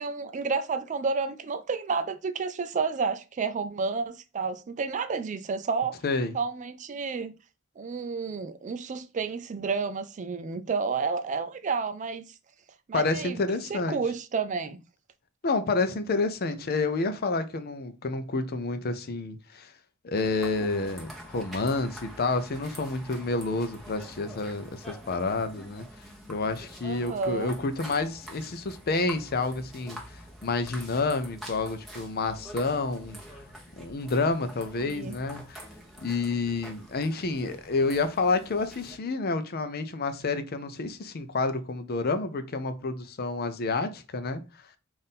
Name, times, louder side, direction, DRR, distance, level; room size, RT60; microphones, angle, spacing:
voice 1, 0.0-6.0 6.3-7.3 7.8-12.3 12.9-13.4 13.7-14.8 26.8-27.5 34.8-35.1, right 4 dB, 35° right, 0.4 m, -30 dB
voice 2, 6.0-6.4 12.9-14.0 15.4-19.7 20.0-25.8 26.3-33.2 33.8-35.6 36.0-44.4, left 3 dB, 50° left, 0.5 m, -29 dB
sound 1, 20.1-39.0, equal, ahead, 1.1 m, -46 dB
4.1 x 2.6 x 3.5 m
head